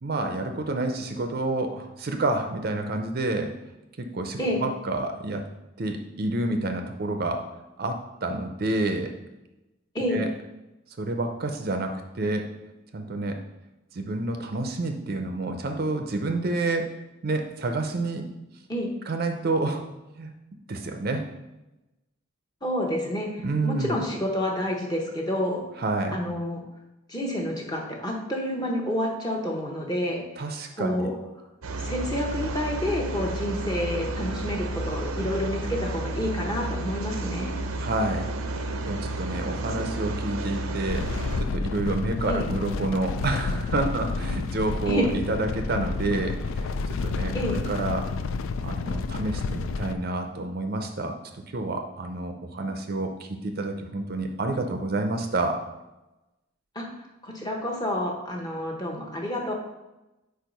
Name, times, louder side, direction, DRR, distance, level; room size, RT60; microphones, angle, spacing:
voice 1, 0.0-3.6 4.0-5.5 5.8-7.4 7.8-9.1 10.1-10.3 11.0-12.5 12.9-13.4 13.9-16.9 17.2-18.3 19.1-19.8 20.1-20.3 20.7-21.3 23.4-24.0 25.8-26.2 30.4-31.1 37.8-38.3 38.8-41.1 41.4-46.8 47.0-48.1 48.6-51.2 51.5-55.6, right 2 dB, 45° right, 5 dB, 0.5 m, -29 dB
voice 2, 22.6-25.6 26.1-26.6 27.1-30.2 30.8-31.2 31.8-37.5 42.3-42.5 44.9-45.2 47.3-47.6 56.7-59.5, left 1 dB, 20° left, 0 dB, 0.9 m, -29 dB
sound 1, 31.6-41.4, right 2 dB, 90° right, 0.6 m, -31 dB
sound 2, 40.9-49.9, left 4 dB, 75° left, 0.3 m, -30 dB
4.6 x 4.6 x 5.2 m, 1.0 s
head